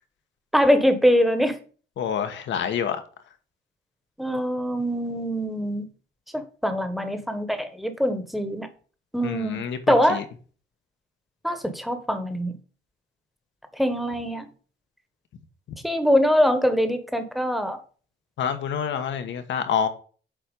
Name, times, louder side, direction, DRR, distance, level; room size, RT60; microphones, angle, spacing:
voice 1, 0.5-1.6 4.2-5.9 6.3-8.7 9.1-10.2 11.4-12.5 13.8-14.5 15.8-17.8, equal, ahead, 1.3 m, -23 dB
voice 2, 2.0-3.0 9.2-10.2 18.4-19.9, left 8 dB, 70° left, 1.3 m, -27 dB
7.4 x 4.4 x 5.3 m
cardioid pair, 90°, 20 cm